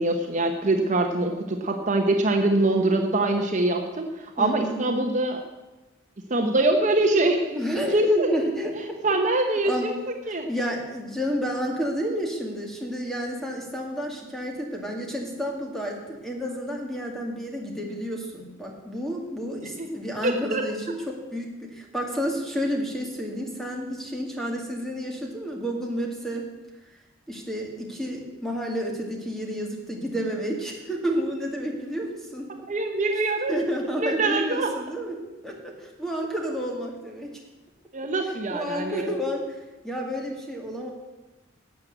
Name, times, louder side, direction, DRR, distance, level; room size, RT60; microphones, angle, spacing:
voice 1, 0.0-5.4 6.3-7.6 7.9-8.3 9.0-9.9 10.3-10.5 19.8-19.9 20.2-20.6 32.7-33.5 34.0-34.7 37.9-39.1, right 2 dB, 40° right, 3 dB, 0.9 m, -24 dB
voice 2, 4.4-4.8 7.6-9.2 9.6-9.9 10.3-26.5 27.3-32.5 33.5-37.4 38.2-39.6 39.8-40.9, equal, ahead, 0 dB, 2.1 m, -30 dB
12.0 x 7.7 x 8.0 m, 1.1 s
head